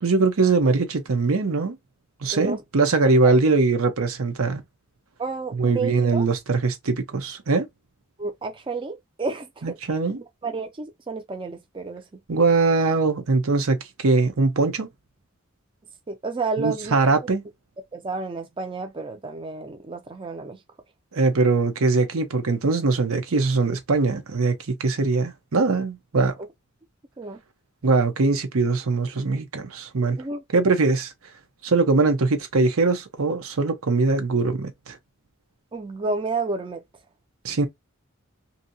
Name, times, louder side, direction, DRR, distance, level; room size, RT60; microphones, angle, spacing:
voice 1, 0.0-1.8 2.2-4.6 5.6-7.7 9.6-10.2 12.3-14.9 16.6-17.4 21.1-26.3 27.8-30.2 30.5-31.1 31.6-35.0 37.4-37.7, right 3 dB, 85° right, 0.8 m, -21 dB
voice 2, 3.0-3.3 5.2-6.3 8.2-9.8 10.4-12.0 16.1-17.1 17.9-20.6 26.4-26.5 27.2-27.4 30.2-30.4 35.7-36.8, right 3 dB, 25° right, 0.4 m, -30 dB
2.7 x 2.7 x 2.6 m
head